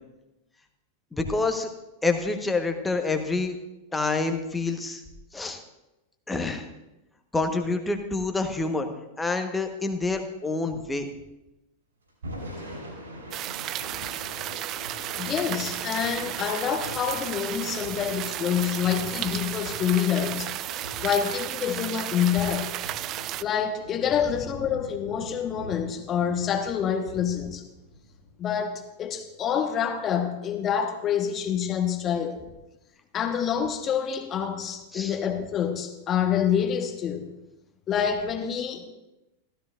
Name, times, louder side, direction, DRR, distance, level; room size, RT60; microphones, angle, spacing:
voice 1, 1.1-1.7 2.0-3.6 3.9-5.0 5.3-5.6 6.3-6.7 7.3-8.9 9.2-11.1 34.9-35.2, left 3 dB, 10° left, 5 dB, 1.2 m, -27 dB
Thunder / Rain, 12.1-28.3, equal, 70° right, 5.2 m, -43 dB
sound 1, 13.3-23.4, right 13 dB, 35° right, 0.3 m, -34 dB
voice 2, 15.2-20.5 21.0-22.7 23.4-27.6 28.4-32.4 33.1-37.3 37.9-38.9, left 8 dB, 30° left, 5 dB, 1.3 m, -27 dB
15.0 x 13.5 x 2.5 m, 0.97 s
figure-of-eight pair, 90°, 0 cm